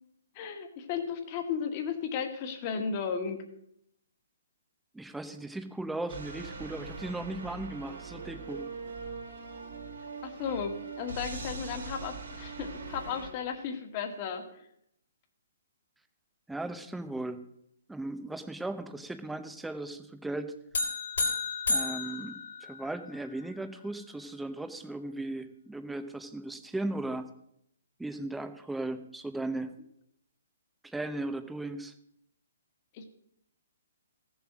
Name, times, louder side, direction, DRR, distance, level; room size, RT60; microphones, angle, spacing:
voice 1, 0.4-3.4 10.2-14.4 32.9-33.0, left 6 dB, 35° left, 5 dB, 1.8 m, -34 dB
voice 2, 4.9-8.7 16.5-17.4 17.9-20.5 21.7-27.3 28.0-29.7 30.8-31.9, right 2 dB, 5° right, 9 dB, 0.8 m, -37 dB
sound 1, 6.1-13.3, right 4 dB, 80° right, 3.3 m, -41 dB
sound 2, 20.7-23.2, left 3 dB, 80° left, 3.3 m, -32 dB
14.0 x 7.2 x 6.1 m, 0.73 s
hypercardioid pair, 150°, 0 cm